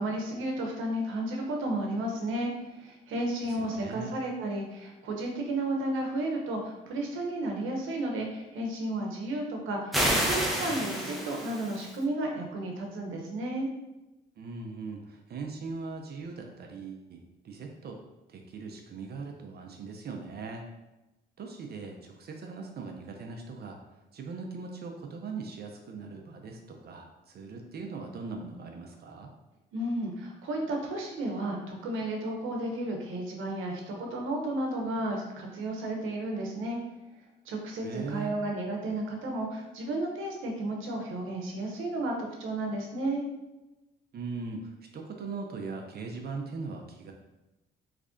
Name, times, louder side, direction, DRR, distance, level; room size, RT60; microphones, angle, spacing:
voice 1, 0.0-13.7 29.7-36.8 37.5-43.2, right 1 dB, 80° right, 1 dB, 0.8 m, -33 dB
voice 2, 3.4-4.2 14.4-18.0 18.3-20.6 21.4-23.8 24.1-29.3 37.8-38.4 44.1-47.1, right 4 dB, 55° right, 2 dB, 0.5 m, -40 dB
sound 1, 9.9-12.0, equal, ahead, 0.6 m, -29 dB
3.2 x 2.4 x 3.6 m, 1.0 s
cardioid pair, 90°, 20 cm